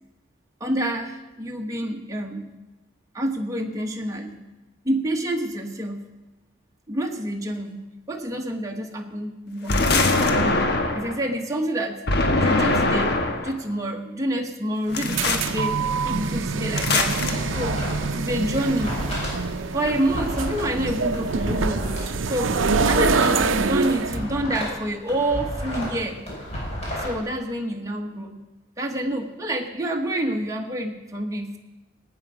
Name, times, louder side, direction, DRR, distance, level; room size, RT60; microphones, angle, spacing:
voice 1, 0.6-2.5 3.1-4.4 4.8-6.1 6.9-10.0 10.3-10.7 10.9-12.0 12.4-15.8 16.0-17.2 17.5-19.0 19.7-22.6 22.9-26.2 27.0-28.4 28.8-31.6, right 1 dB, 15° right, 1 dB, 1.2 m, -28 dB
sound 1, 9.7-11.2 12.1-13.5 14.9-15.5 16.8-17.3, left 2 dB, 55° left, 1.3 m, -22 dB
sound 2, 14.9-24.2, right 4 dB, 85° right, 0.7 m, -25 dB
sound 3, 17.3-18.2 18.4-22.0 22.4-24.8 25.1-27.1, equal, 35° left, 5.3 m, -32 dB
18.5 x 8.9 x 5.0 m, 1.1 s
head